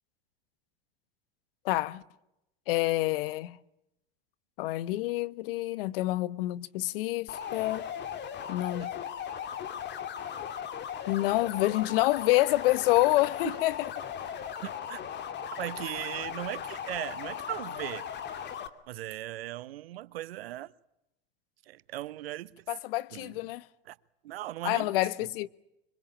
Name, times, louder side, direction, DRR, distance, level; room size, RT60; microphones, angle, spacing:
voice 1, 1.6-2.0 2.7-3.6 4.6-7.8 8.5-8.9 11.1-13.9 22.7-23.6 24.6-25.5, left 17 dB, 65° left, 1.2 m, -27 dB
sound 1, 7.3-18.7, left 8 dB, 35° left, 2.5 m, -38 dB
voice 2, 14.6-15.0 15.6-18.1 18.9-20.7 21.7-22.6 23.1-23.4 23.9-24.0 24.2-24.9, right 15 dB, 75° right, 1.1 m, -38 dB
26.5 x 23.5 x 8.8 m
hypercardioid pair, 100°, 30 cm